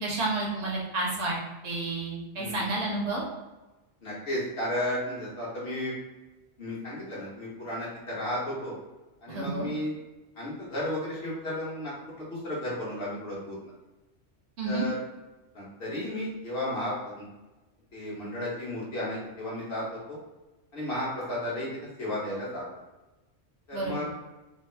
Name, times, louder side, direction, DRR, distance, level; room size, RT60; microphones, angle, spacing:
voice 1, 0.0-1.4 1.6-3.2 9.3-9.7 14.6-14.9 23.7-24.0, right 2 dB, 70° right, -3 dB, 1.1 m, -30 dB
voice 2, 2.3-2.7 4.0-5.9 6.6-8.7 9.2-9.9 10.4-13.6 14.6-15.0 15.5-17.2 17.9-20.2 20.7-21.7 22.0-22.6 23.7-24.1, left 1 dB, 55° left, -6 dB, 1.3 m, -33 dB
3.4 x 2.1 x 3.2 m, 1.1 s
omnidirectional pair, 1.2 m